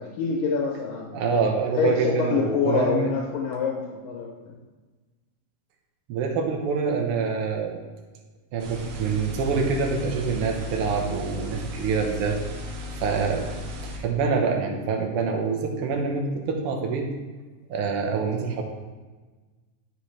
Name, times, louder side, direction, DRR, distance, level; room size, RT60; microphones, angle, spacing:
voice 1, 0.0-1.2 1.7-4.5, left 6 dB, 85° left, -1 dB, 2.6 m, -26 dB
voice 2, 1.1-3.1 6.1-7.8 8.5-12.4 13.0-13.5 13.9-17.1 17.7-18.6, right 5 dB, 70° right, 3 dB, 1.4 m, -26 dB
sound 1, 8.6-14.0, left 2 dB, 90° right, 2.8 m, -36 dB
10.0 x 6.3 x 3.2 m, 1.3 s
omnidirectional pair, 3.8 m